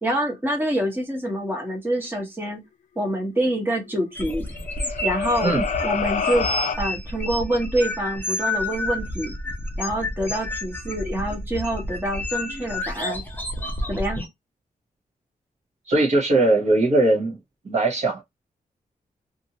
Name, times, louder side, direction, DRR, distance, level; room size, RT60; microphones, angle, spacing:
voice 1, 0.0-2.6 3.0-4.5 5.0-5.5 5.8-6.5 6.8-9.3 9.8-13.2 13.9-14.2, right 1 dB, 15° right, 1.0 m, -26 dB
sound 1, 4.1-14.3, left 1 dB, 10° left, 0.7 m, -30 dB
sound 2, 4.6-6.8, left 6 dB, 60° left, 0.4 m, -27 dB
voice 2, 15.9-17.4 17.6-18.2, right 2 dB, 50° right, 1.0 m, -20 dB
2.6 x 2.6 x 2.8 m
wide cardioid pair, 135°, 15 cm